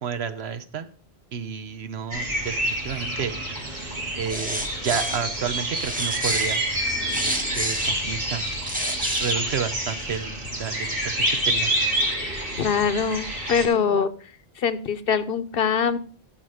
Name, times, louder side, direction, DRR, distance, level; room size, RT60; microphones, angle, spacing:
voice 1, 0.0-0.9 1.3-3.3 4.2-6.6 7.2-8.5 9.2-11.7, right 7 dB, 80° right, 11 dB, 1.2 m, -31 dB
sound 1, 2.1-13.7, right 1 dB, 60° right, 3.1 m, -28 dB
sound 2, 4.2-5.2 5.8-7.9 8.5-9.4, equal, 10° right, 1.2 m, -29 dB
voice 2, 12.6-14.1 14.6-16.0, left 6 dB, 65° left, 14 dB, 0.9 m, -23 dB
13.5 x 6.0 x 4.9 m, 0.42 s
omnidirectional pair, 1.1 m